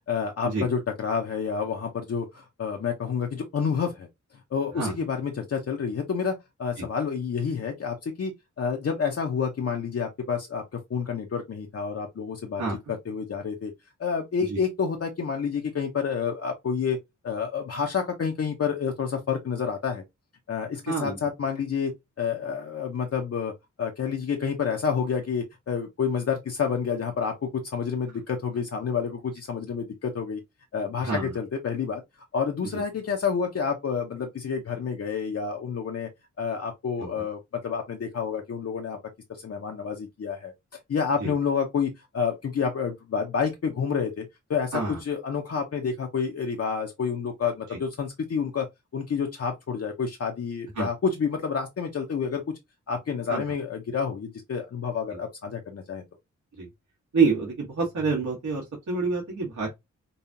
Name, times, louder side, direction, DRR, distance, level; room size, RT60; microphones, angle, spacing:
voice 1, 0.0-4.1 4.5-12.6 12.9-13.7 14.0-17.0 17.2-20.0 20.5-21.9 22.2-23.5 23.8-30.4 30.7-32.0 32.3-36.1 36.4-39.0 39.3-40.5 40.9-48.7 48.9-52.6 52.9-56.0, left 6 dB, 55° left, 0.7 m, -29 dB
voice 2, 20.9-21.2 31.0-31.4 37.0-37.2 41.2-41.3 44.7-45.0 47.7-47.8 50.8-50.9 53.3-53.4 56.5-56.7 57.1-59.7, right 4 dB, 75° right, 1.5 m, -27 dB
5.3 x 2.3 x 2.7 m
wide cardioid pair, 160°, 29 cm